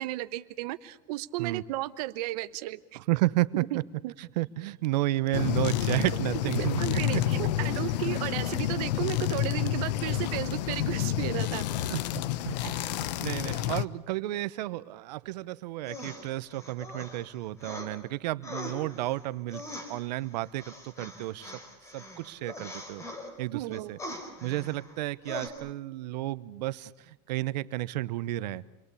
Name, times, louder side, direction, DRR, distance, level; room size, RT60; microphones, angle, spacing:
voice 1, 0.0-3.0 3.7-4.1 6.6-11.6 12.6-12.9 23.5-23.9, right 17 dB, 65° right, 11 dB, 1.1 m, -34 dB
voice 2, 2.9-3.8 4.2-6.8 7.1-7.2 7.6-7.9 11.9-19.6 19.9-21.5 21.9-23.0 23.4-24.0 24.4-28.6, right 17 dB, 90° right, 17 dB, 1.0 m, -32 dB
sound 1, 5.3-13.9, left 12 dB, 90° left, 1.0 m, -29 dB
sound 2, 15.9-18.0 18.4-23.3 23.7-25.0 25.3-25.5, left 1 dB, 15° left, 4.4 m, -42 dB
28.5 x 22.0 x 8.4 m, 0.89 s
supercardioid pair, 160°, 21 cm